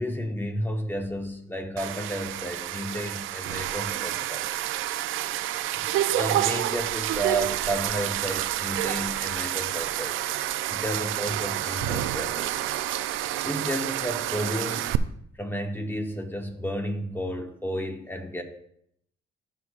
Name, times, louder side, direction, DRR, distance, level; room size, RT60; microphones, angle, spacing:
voice 1, 0.0-4.5 5.8-5.9 6.2-10.2 10.7-12.6 13.4-15.0 15.4-18.4, equal, 10° left, 4 dB, 1.3 m, -32 dB
sound 1, 1.8-15.0, right 14 dB, 90° right, 0.4 m, -29 dB
14.5 x 6.6 x 2.4 m, 0.69 s
cardioid pair, 90°, 20 cm